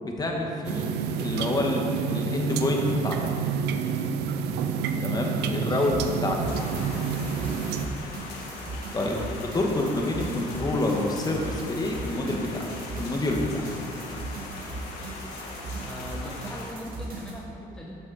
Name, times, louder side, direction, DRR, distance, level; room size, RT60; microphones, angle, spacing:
voice 1, 0.0-3.2 5.0-5.9 6.2-6.4 8.9-9.1 9.5-12.6 13.0-13.7, left 2 dB, 25° left, 0 dB, 1.4 m, -27 dB
sound 1, 0.6-7.9, right 6 dB, 85° right, 0.6 m, -29 dB
voice 2, 5.4-5.9 9.0-9.3 15.8-18.0, left 1 dB, 5° left, -4 dB, 1.0 m, -38 dB
sound 2, 5.8-17.4, right 2 dB, 60° right, 2.2 m, -38 dB
sound 3, 6.5-16.7, left 3 dB, 85° left, 1.6 m, -40 dB
13.0 x 6.4 x 4.2 m, 2.6 s
cardioid pair, 110°, 17 cm